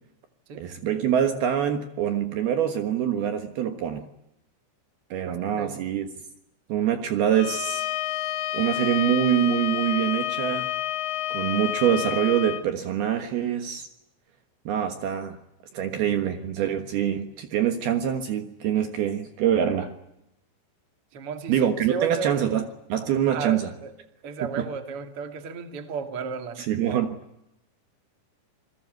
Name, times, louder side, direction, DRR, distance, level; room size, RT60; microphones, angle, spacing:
voice 1, 0.6-4.1 5.1-6.1 6.7-7.9 8.5-10.7 11.3-13.9 14.7-15.4 15.7-19.9 21.5-22.6 22.9-23.7 24.6-24.7 26.6-27.2, right 9 dB, 65° right, 3.0 m, -25 dB
voice 2, 5.3-5.8 21.1-22.7 23.3-23.9 24.2-26.6, right 6 dB, 40° right, 2.7 m, -34 dB
Bowed string instrument, 7.3-12.6, left 14 dB, 75° left, 3.3 m, -29 dB
28.0 x 21.5 x 9.4 m
omnidirectional pair, 5.2 m